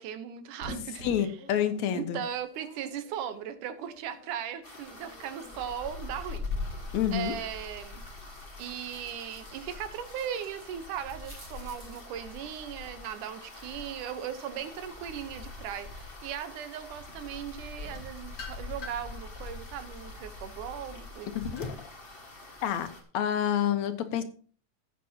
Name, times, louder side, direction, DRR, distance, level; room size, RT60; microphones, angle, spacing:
voice 1, 0.0-1.4 1.9-6.4 7.1-8.1 8.6-21.4, right 9 dB, 90° right, 11 dB, 2.6 m, -38 dB
sound 1, 0.6-4.5 4.9-12.1, equal, 30° right, 4.9 m, -50 dB
voice 2, 1.0-2.2 6.9-7.3 21.4-21.6 22.6-22.9 23.1-24.2, left 9 dB, 70° left, 9 dB, 2.4 m, -28 dB
sound 2, 4.6-23.0, left 3 dB, 20° left, 2.0 m, -43 dB
sound 3, 17.8-19.2 19.7-22.0, left 3 dB, 45° left, 1.9 m, -43 dB
15.0 x 8.8 x 2.9 m, 0.42 s
omnidirectional pair, 3.5 m